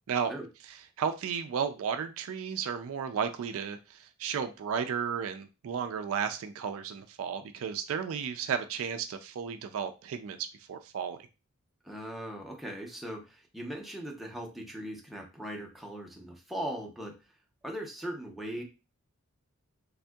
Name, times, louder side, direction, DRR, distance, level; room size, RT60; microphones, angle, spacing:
voice 1, 1.0-10.4 10.7-11.2, right 7 dB, 65° right, 0.3 m, -33 dB
voice 2, 11.8-17.1 17.6-18.6, equal, ahead, 0.5 m, -39 dB
3.5 x 2.6 x 2.2 m
head